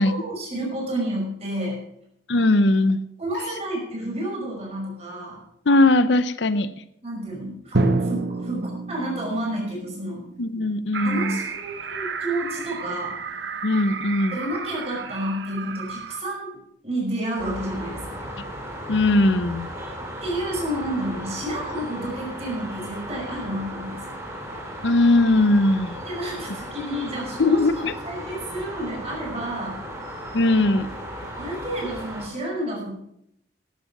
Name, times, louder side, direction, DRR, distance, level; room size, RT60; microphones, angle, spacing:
voice 1, 0.0-1.8 3.2-5.4 7.0-10.2 11.0-13.2 14.3-18.3 20.2-24.1 26.1-29.8 31.4-32.9, right 1 dB, 35° right, -1 dB, 5.4 m, -30 dB
voice 2, 2.3-3.0 5.7-6.7 10.4-11.4 13.6-14.4 18.9-19.7 24.8-26.0 27.4-27.9 30.3-30.9, left 2 dB, 75° left, 13 dB, 0.7 m, -19 dB
Drum, 7.7-11.5, right 2 dB, 60° right, 1.3 m, -28 dB
sound 1, 10.9-16.2, right 5 dB, 75° right, 1.0 m, -33 dB
sound 2, 17.4-32.3, equal, 15° right, 2.7 m, -36 dB
12.5 x 9.6 x 6.0 m, 0.74 s
head